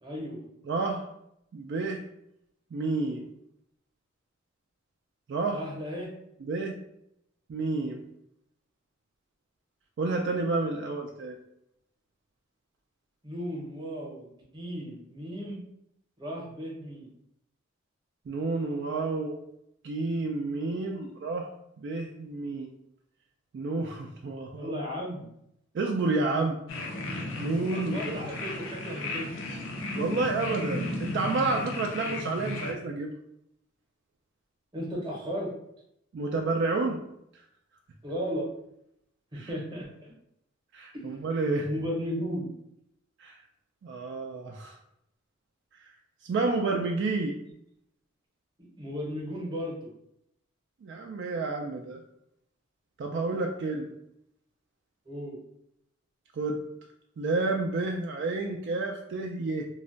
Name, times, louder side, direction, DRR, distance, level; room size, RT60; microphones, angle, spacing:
voice 1, 0.0-0.4 5.5-6.1 13.2-15.6 16.2-17.1 24.6-25.3 27.7-29.3 34.7-35.5 38.0-38.5 39.3-40.1 40.9-41.1 41.4-42.5 48.8-49.9 55.1-55.4, equal, 25° right, -2 dB, 0.8 m, -35 dB
voice 2, 0.7-1.1 1.5-2.0 2.7-3.3 5.3-5.6 6.4-6.7 7.5-8.0 10.0-11.4 18.3-19.4 19.8-21.5 21.8-22.7 23.5-24.8 25.7-26.6 27.4-28.2 29.9-33.1 36.1-37.0 39.3-39.5 40.7-41.7 43.2-43.4 43.8-44.8 46.2-47.3 50.8-52.0 53.0-53.9 56.4-56.6 57.2-59.7, right 3 dB, 60° right, 2 dB, 0.3 m, -30 dB
sound 1, 26.7-32.7, left 1 dB, 85° left, 0.6 m, -35 dB
2.3 x 2.1 x 3.7 m, 0.78 s
head